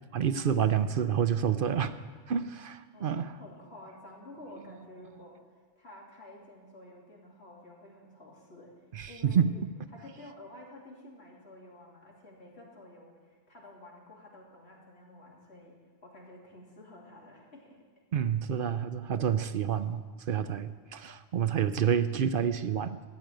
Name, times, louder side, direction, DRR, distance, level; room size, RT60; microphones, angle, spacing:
voice 1, 0.1-1.9 2.3-3.4 8.9-9.5 18.1-23.0, right 8 dB, 60° right, 12 dB, 0.8 m, -28 dB
voice 2, 2.9-5.4 5.8-9.5 9.9-15.8 16.0-17.8, left 1 dB, 80° left, -2 dB, 3.3 m, -51 dB
14.5 x 8.6 x 9.0 m, 1.5 s
omnidirectional pair, 1.1 m